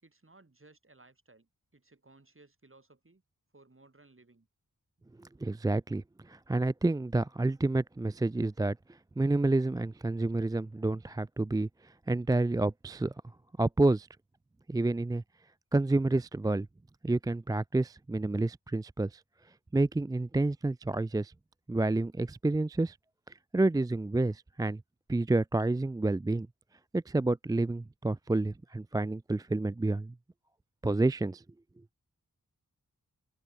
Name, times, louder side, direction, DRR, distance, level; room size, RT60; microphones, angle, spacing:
voice 1, 0.0-3.2 3.5-4.5, right 2 dB, 35° right, 5.2 m, -60 dB
voice 2, 5.4-8.8 9.2-11.7 12.1-13.1 13.6-14.1 14.7-15.2 15.7-16.7 17.0-19.2 19.7-21.3 21.7-23.0 23.5-24.8 25.1-26.5 26.9-30.1 30.8-31.4, right 2 dB, 10° right, 0.3 m, -29 dB
wide cardioid pair, 65°, 35 cm